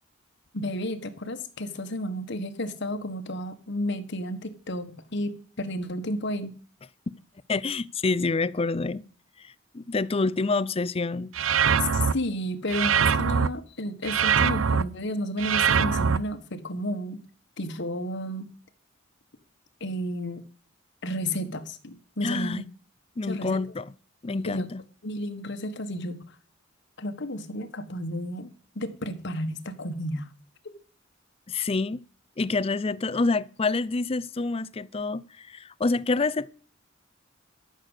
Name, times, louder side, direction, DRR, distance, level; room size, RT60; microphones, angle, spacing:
voice 1, 0.5-6.6 11.8-17.2 17.6-18.5 19.8-20.4 21.0-22.6 23.2-23.6 24.3-24.8 25.0-26.4 27.0-30.3 30.6-30.7, left 1 dB, 60° left, 1.5 m, -32 dB
voice 2, 7.5-9.0 9.4-11.3 22.2-22.7 23.2-23.9 24.2-24.8 31.5-32.0 32.4-36.5, left 3 dB, 30° left, 0.5 m, -27 dB
sound 1, 11.3-12.1 12.7-13.5 14.0-14.8 15.4-16.2, right 7 dB, 90° right, 0.6 m, -22 dB
13.0 x 6.6 x 8.1 m
head